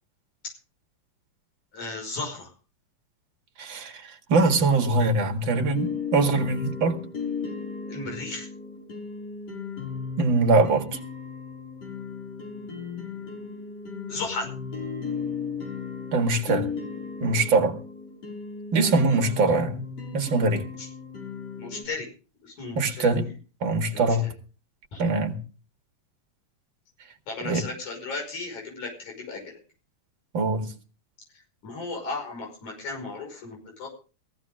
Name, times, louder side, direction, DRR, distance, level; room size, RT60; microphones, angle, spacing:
voice 1, 1.7-2.5 7.9-8.5 14.1-14.5 18.8-19.0 20.8-20.9 21.6-22.1 22.4-23.1 23.9-24.3 24.9-25.1 27.3-29.6 31.6-33.9, left 3 dB, 90° left, 7.1 m, -35 dB
voice 2, 3.6-7.0 10.2-11.0 16.1-16.7 17.2-17.8 18.7-19.9 20.1-20.7 22.8-23.3 23.6-24.3 25.0-25.4 27.4-27.7 30.3-30.7, right 3 dB, 45° right, 2.4 m, -23 dB
sound 1, 5.7-21.8, left 5 dB, 60° left, 6.6 m, -35 dB
18.0 x 16.0 x 3.7 m
omnidirectional pair, 3.3 m